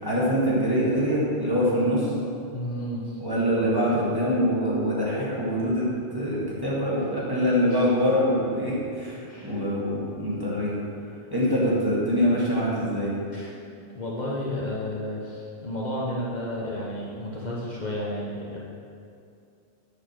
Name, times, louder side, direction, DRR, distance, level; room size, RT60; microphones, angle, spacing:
voice 1, 0.0-2.1 3.2-10.7 11.3-13.1, equal, 20° right, -7 dB, 1.6 m, -24 dB
voice 2, 2.5-3.2 3.6-4.0 7.7-7.8 9.3-9.6 13.3-18.6, left 1 dB, 45° left, -5 dB, 0.9 m, -32 dB
6.6 x 4.8 x 5.7 m, 2.5 s
omnidirectional pair, 1.1 m